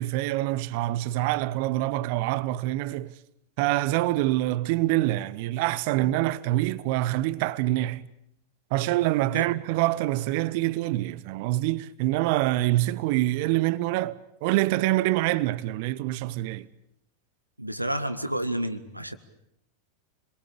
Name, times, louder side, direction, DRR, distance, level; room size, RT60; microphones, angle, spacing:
voice 1, 0.0-3.1 3.6-8.1 8.7-16.7, right 16 dB, 45° right, 1.1 m, -25 dB
voice 2, 17.6-19.2, right 1 dB, 85° right, 1.8 m, -30 dB
29.5 x 22.5 x 8.6 m
figure-of-eight pair, 90°, 0 cm